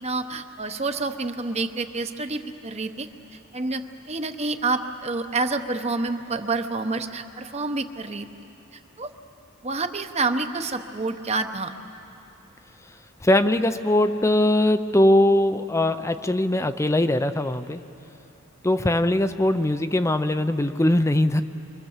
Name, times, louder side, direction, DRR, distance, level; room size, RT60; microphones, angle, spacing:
voice 1, 0.0-3.1 3.5-8.3 9.0-9.1 9.6-11.7, right 3 dB, 30° right, 8 dB, 1.0 m, -28 dB
voice 2, 13.2-17.8 18.6-21.4, left 1 dB, 15° left, 10 dB, 0.5 m, -21 dB
28.5 x 24.5 x 7.3 m, 2.8 s
head